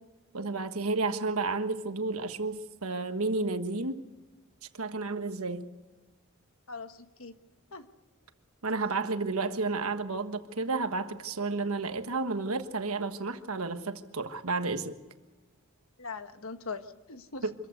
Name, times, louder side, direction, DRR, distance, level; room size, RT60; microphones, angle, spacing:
voice 1, 0.3-4.0 4.7-5.8 8.6-14.9 17.4-17.5, right 3 dB, 75° right, 1.4 m, -31 dB
voice 2, 6.7-7.4 7.7-7.9 16.0-17.4, left 4 dB, 65° left, 1.3 m, -41 dB
25.5 x 14.5 x 8.1 m
head